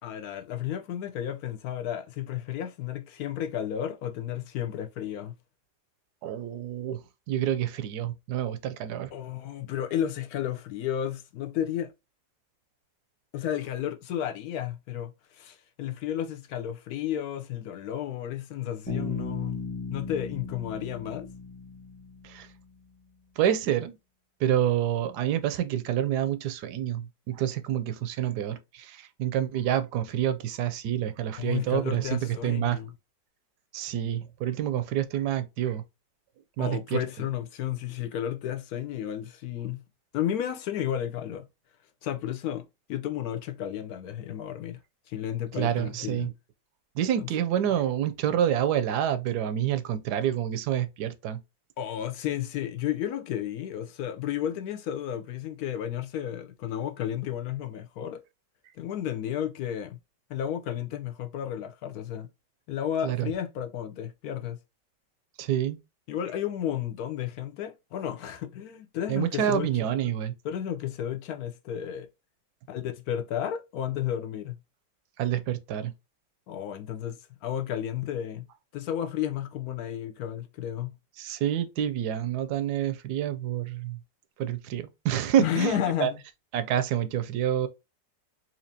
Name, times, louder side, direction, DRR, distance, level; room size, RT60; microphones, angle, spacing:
voice 1, 0.0-5.3 9.1-11.9 13.3-19.6 19.9-21.3 31.4-32.9 36.6-39.8 40.1-41.5 42.0-44.8 45.1-46.3 47.2-47.3 51.8-58.2 58.8-60.0 60.3-62.3 62.7-64.6 66.1-69.7 70.4-72.1 72.7-74.5 76.5-78.5 78.7-81.0 85.4-86.2, left 10 dB, 70° left, 0.9 m, -32 dB
voice 2, 6.2-7.0 7.3-9.1 22.2-22.5 23.4-24.0 24.4-32.8 33.7-35.8 36.6-37.0 45.6-46.3 47.0-51.4 63.0-63.3 65.4-65.8 69.1-70.3 75.2-75.9 81.2-84.0 84.4-86.1 86.5-87.7, right 10 dB, 75° right, 1.1 m, -28 dB
Bass guitar, 18.9-22.6, left 4 dB, 10° left, 0.4 m, -36 dB
4.4 x 2.6 x 2.7 m
omnidirectional pair, 1.9 m